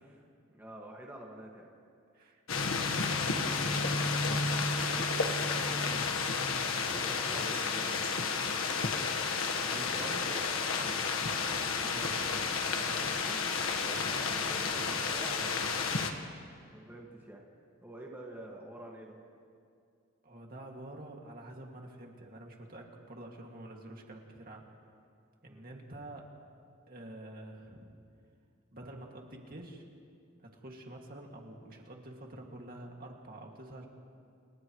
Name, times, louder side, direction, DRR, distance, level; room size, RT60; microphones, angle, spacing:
voice 1, 0.5-1.7 6.9-10.9 12.7-15.9 16.7-17.4 17.8-19.1 25.5-25.7, right 1 dB, 10° right, -3 dB, 1.9 m, -48 dB
voice 2, 2.1-2.4 3.7-5.1 5.5-6.3 9.4-10.2 11.8-12.4 20.2-24.7 25.4-26.3 26.9-27.9 28.7-29.8 30.4-33.8, right 1 dB, 45° right, 0 dB, 2.3 m, -48 dB
sound 1, 2.5-16.1, left 4 dB, 80° left, 1.4 m, -31 dB
29.5 x 29.0 x 3.2 m, 2.3 s
head